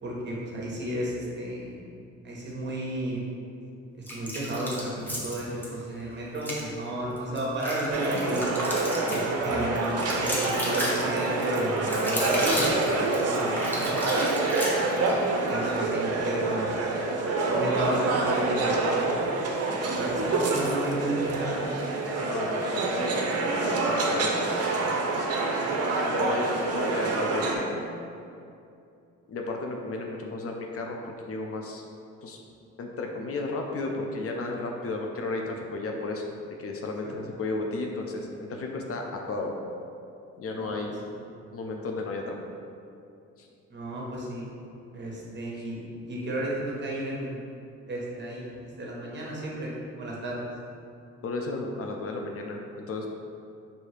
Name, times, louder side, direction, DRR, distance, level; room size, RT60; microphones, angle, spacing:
voice 1, 0.0-1.8 2.2-3.2 3.9-8.5 9.1-14.0 14.9-15.1 15.5-16.8 17.4-19.3 19.9-21.6 37.0-37.2 40.5-40.8 43.7-44.5 44.9-47.5 47.9-50.5, right 1 dB, 35° right, -4 dB, 1.0 m, -33 dB
sound 1, 4.0-5.7 6.3-6.6 7.2-15.2, equal, 5° left, 0.8 m, -32 dB
sound 2, 7.9-27.6, right 3 dB, 55° right, 0.6 m, -27 dB
voice 2, 22.2-24.6 26.1-26.5 26.7-27.8 29.3-31.8 32.2-32.4 32.8-36.2 36.6-39.6 40.4-40.9 41.5-42.4 43.4-43.5 51.2-53.1, left 3 dB, 50° left, 2 dB, 0.5 m, -33 dB
4.6 x 2.7 x 3.2 m, 2.6 s
cardioid pair, 90°, 30 cm